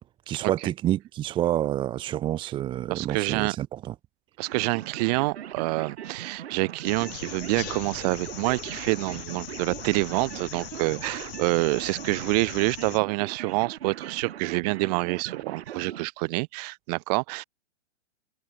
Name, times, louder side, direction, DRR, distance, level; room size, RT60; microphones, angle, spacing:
voice 1, 0.3-3.9, right 12 dB, 15° right, 1.0 m, -28 dB
voice 2, 2.9-3.6 4.4-17.4, right 27 dB, 35° right, 4.6 m, -27 dB
sound 1, 4.5-16.1, right 10 dB, 60° right, 4.6 m, -40 dB
sound 2, 6.8-13.0, left 23 dB, 35° left, 5.0 m, -41 dB
hypercardioid pair, 150°, 36 cm